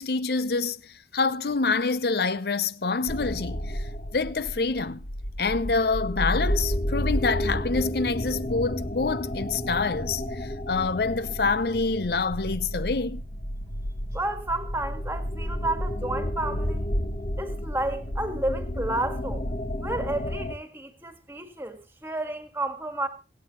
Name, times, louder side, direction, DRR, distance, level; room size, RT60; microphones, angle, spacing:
voice 1, 0.0-5.1 5.4-13.2, left 4 dB, 65° left, 0.7 m, -27 dB
sound 1, 3.1-20.5, equal, 45° left, 1.3 m, -31 dB
voice 2, 14.1-16.9 17.4-19.5 19.8-23.1, right 2 dB, 10° right, 1.9 m, -31 dB
25.0 x 8.4 x 3.0 m
head